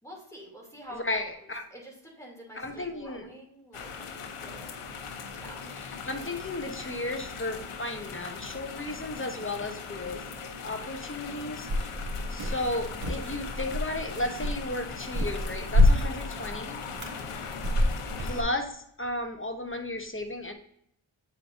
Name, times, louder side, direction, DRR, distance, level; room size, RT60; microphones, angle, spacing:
voice 1, 0.0-4.8 5.3-5.6 12.1-12.4 17.0-17.3, equal, 5° left, -2 dB, 2.8 m, -48 dB
voice 2, 0.9-1.6 2.5-3.3 6.0-11.9 12.3-16.8 18.2-20.5, left 1 dB, 25° left, 5 dB, 0.9 m, -34 dB
sound 1, 3.7-18.4, left 5 dB, 85° left, 0.8 m, -40 dB
sound 2, 11.6-18.4, left 1 dB, 70° right, 2.2 m, -28 dB
8.4 x 5.0 x 2.6 m, 0.70 s
cardioid pair, 45°, 50 cm